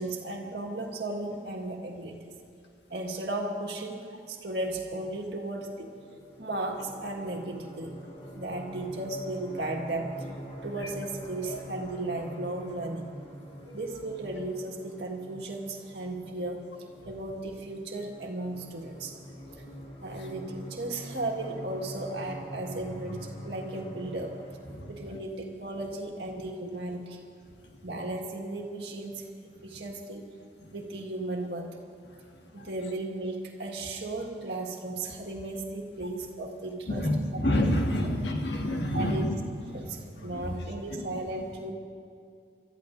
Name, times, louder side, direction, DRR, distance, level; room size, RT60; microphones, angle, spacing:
voice 1, 0.0-2.3 2.9-5.9 6.4-8.0 8.3-10.3 10.6-13.1 13.7-16.6 17.1-19.2 20.0-24.4 24.9-27.2 27.8-29.3 29.6-30.3 30.7-31.8 32.5-37.1 38.9-39.4 39.7-41.7, right 2 dB, 70° right, 1 dB, 1.7 m, -35 dB
sound 1, 5.6-25.0, equal, 30° left, 2.8 m, -45 dB
voice 2, 36.9-39.3 39.7-39.9 40.2-40.5, left 1 dB, 80° left, 1 dB, 1.7 m, -28 dB
29.5 x 13.5 x 2.6 m, 2.3 s
head